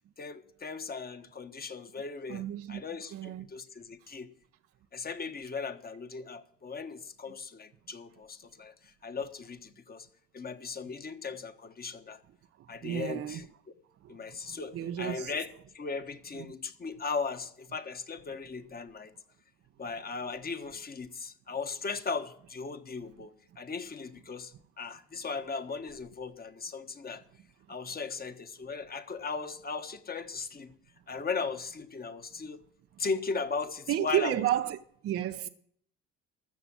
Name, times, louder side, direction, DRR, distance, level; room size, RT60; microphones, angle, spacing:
voice 1, 0.2-2.4 2.7-4.3 4.9-10.1 10.3-12.2 12.7-13.4 14.1-19.1 19.8-27.2 27.7-30.7 31.1-32.6 33.0-34.4 35.4-35.5, left 4 dB, 25° left, 1.4 m, -37 dB
voice 2, 2.3-2.8 3.1-3.5 12.6-13.5 14.0-15.3 16.4-16.5 33.9-34.8 35.0-35.5, right 11 dB, 40° right, 0.7 m, -32 dB
13.5 x 6.9 x 7.5 m
hypercardioid pair, 60°, 34 cm